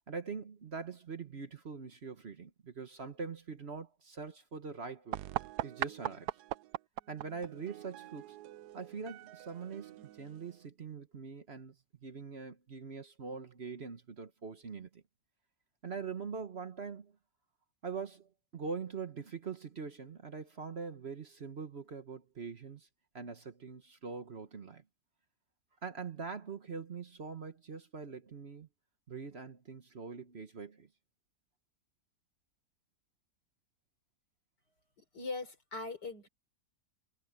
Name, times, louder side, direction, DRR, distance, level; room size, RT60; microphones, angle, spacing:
voice 1, 0.1-5.2 5.6-6.3 7.1-8.4 8.7-11.7 12.0-15.0 15.8-17.1 17.8-22.9 23.1-24.8 25.8-28.7 29.1-30.9, right 5 dB, 45° right, 1.3 m, -43 dB
sound 1, 5.1-10.7, right 14 dB, 75° right, 1.1 m, -41 dB
voice 2, 35.0-36.3, left 3 dB, 80° left, 4.9 m, -41 dB
omnidirectional pair, 1.8 m